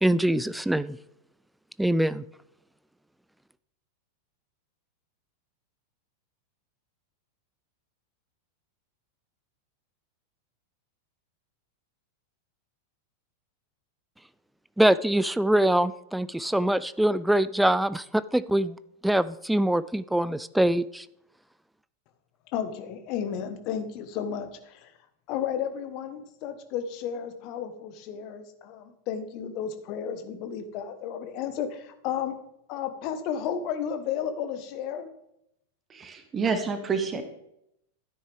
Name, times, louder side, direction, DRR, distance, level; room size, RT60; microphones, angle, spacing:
voice 1, 0.0-1.0 1.8-2.2 14.8-21.1, right 1 dB, 5° right, 17 dB, 0.3 m, -24 dB
voice 2, 22.5-24.9 25.3-32.4 32.7-35.1, left 8 dB, 40° left, 9 dB, 1.2 m, -33 dB
voice 3, 35.9-37.2, right 5 dB, 20° right, 8 dB, 1.2 m, -28 dB
12.5 x 10.0 x 3.5 m, 0.79 s
figure-of-eight pair, 90°, 0 cm